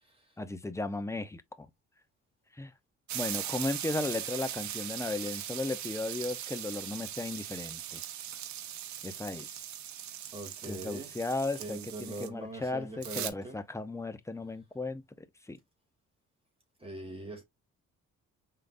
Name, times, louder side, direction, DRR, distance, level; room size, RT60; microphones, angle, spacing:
voice 1, 0.4-1.7 2.5-2.7 3.1-8.0 9.0-9.5 10.7-15.0 15.4-15.6, left 2 dB, 10° left, 0.8 m, -35 dB
sound 1, 3.1-12.3 13.0-13.3, right 11 dB, 65° right, 0.8 m, -39 dB
voice 2, 10.3-11.1 11.6-13.6 16.8-17.4, right 2 dB, 20° right, 2.1 m, -42 dB
5.0 x 3.8 x 2.6 m
cardioid pair, 90°, 30 cm